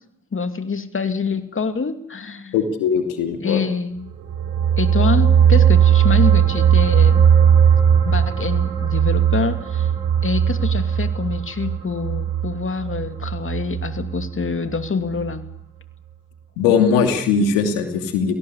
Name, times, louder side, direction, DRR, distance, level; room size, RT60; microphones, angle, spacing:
voice 1, 0.3-2.5 3.4-4.1 4.8-7.2 8.0-9.9 10.2-15.5, left 5 dB, 40° left, 8 dB, 2.6 m, -26 dB
voice 2, 2.5-3.6 16.6-18.4, left 6 dB, 90° left, 5 dB, 2.8 m, -19 dB
sound 1, 4.1-14.8 15.2-15.3, right 8 dB, 80° right, 5.7 m, -18 dB
28.5 x 18.0 x 8.4 m, 0.78 s
hypercardioid pair, 45°, 33 cm